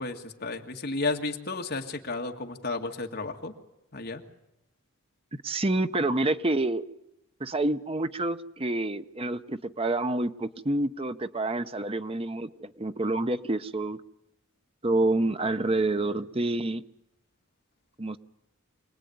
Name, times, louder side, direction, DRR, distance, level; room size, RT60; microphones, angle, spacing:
voice 1, 0.0-3.5 3.9-4.2, left 3 dB, 45° left, 4 dB, 2.1 m, -32 dB
voice 2, 5.4-6.8 7.4-14.0 14.8-16.8 18.0-18.2, right 2 dB, 25° right, 10 dB, 0.8 m, -28 dB
25.5 x 19.0 x 9.4 m, 0.91 s
head